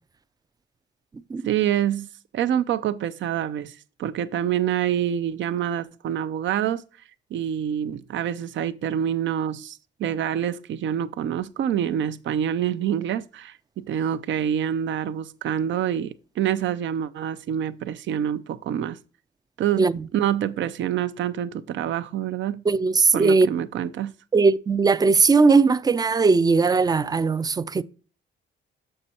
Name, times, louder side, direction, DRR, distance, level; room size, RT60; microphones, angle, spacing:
voice 1, 1.4-2.1 2.3-6.8 7.3-19.0 19.6-22.6 23.1-24.1, right 10 dB, 70° right, 0.7 m, -26 dB
voice 2, 22.7-23.5 24.3-27.8, right 4 dB, 20° right, 0.4 m, -19 dB
6.6 x 6.3 x 4.3 m
cardioid pair, 90°, 20 cm